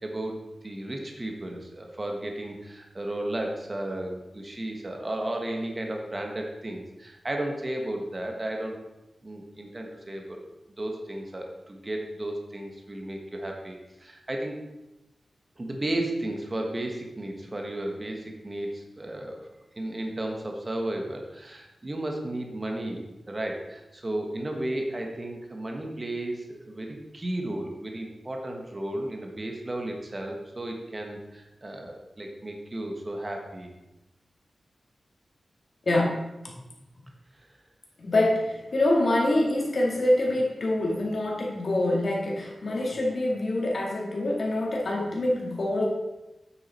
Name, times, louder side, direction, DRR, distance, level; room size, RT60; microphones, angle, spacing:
voice 1, 0.0-8.8 9.2-10.4 10.8-14.6 15.6-19.5 19.8-33.7 37.4-37.5, right 1 dB, 25° right, 2 dB, 1.3 m, -34 dB
voice 2, 35.9-36.2 38.0-45.9, left 1 dB, 50° left, -2 dB, 2.2 m, -25 dB
9.4 x 6.5 x 4.3 m, 0.99 s
wide cardioid pair, 140°, 0 cm